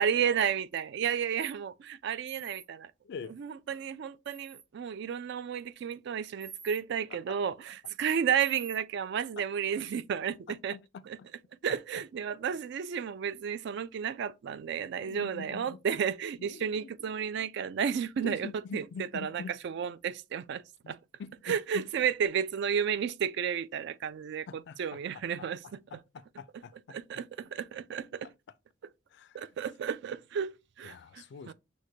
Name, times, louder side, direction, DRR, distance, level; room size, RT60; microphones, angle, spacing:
voice 1, 0.0-2.9 3.4-10.8 11.1-11.2 11.6-18.8 19.1-21.0 21.5-25.8 26.9-28.3 29.3-31.5, right 7 dB, 55° right, 0.3 m, -32 dB
sound 1, 2.3-2.6 4.3-4.6 6.4-6.8 8.4-8.8, right 5 dB, 90° right, 1.4 m, -48 dB
voice 2, 3.0-3.4 7.1-7.4 9.4-9.5 10.5-11.3 15.0-15.8 16.4-17.1 18.2-19.6 20.8-21.9 24.5-25.7 26.1-27.0 29.1-29.6 30.8-31.5, left 5 dB, 60° left, 0.3 m, -45 dB
6.2 x 2.1 x 2.7 m
head